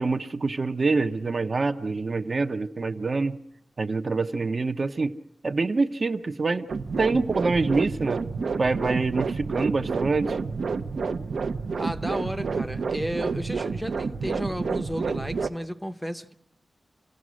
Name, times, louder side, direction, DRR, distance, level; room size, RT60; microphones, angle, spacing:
voice 1, 0.0-3.4 3.8-5.1 5.4-6.7 7.0-8.2 8.6-10.4, right 3 dB, 40° right, 7 dB, 0.8 m, -25 dB
sound 1, 6.7-15.5, right 4 dB, 65° right, 0.9 m, -29 dB
voice 2, 11.8-16.3, equal, ahead, 8 dB, 0.8 m, -33 dB
27.5 x 17.0 x 6.3 m, 0.77 s
wide cardioid pair, 165°, 0 cm